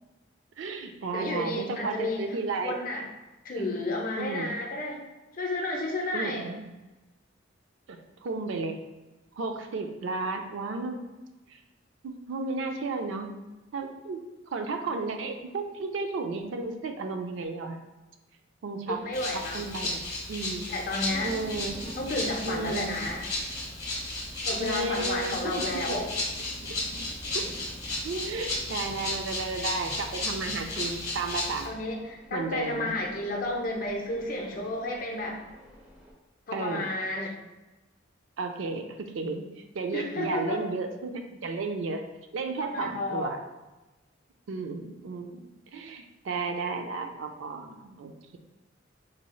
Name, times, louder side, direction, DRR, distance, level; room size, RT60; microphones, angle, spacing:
voice 1, 0.6-2.8 3.6-3.8 4.2-4.5 6.1-6.7 7.9-8.8 9.4-11.0 11.5-11.6 12.0-13.3 13.7-14.2 14.5-17.8 18.6-19.0 19.5-20.0 20.3-20.7 21.2-22.1 22.4-23.0 24.6-26.0 26.6-26.8 27.3-27.5 28.0-31.7 32.3-32.9 36.5-36.9 38.4-42.0 42.3-43.4 44.5-48.4, right 3 dB, 70° right, 5 dB, 0.4 m, -33 dB
voice 2, 1.1-2.2 2.5-3.0 3.4-5.0 5.3-6.5 18.9-19.7 20.7-21.3 22.0-23.2 24.4-26.1 31.6-35.4 36.5-37.3 39.9-40.6 42.6-43.3, left 2 dB, 45° left, 0 dB, 0.6 m, -32 dB
Rattle (instrument), 19.1-31.7, left 2 dB, 25° left, 1.1 m, -34 dB
sound 1, 21.1-36.1, right 1 dB, 10° right, 0.6 m, -49 dB
3.9 x 3.1 x 2.3 m, 1.1 s
head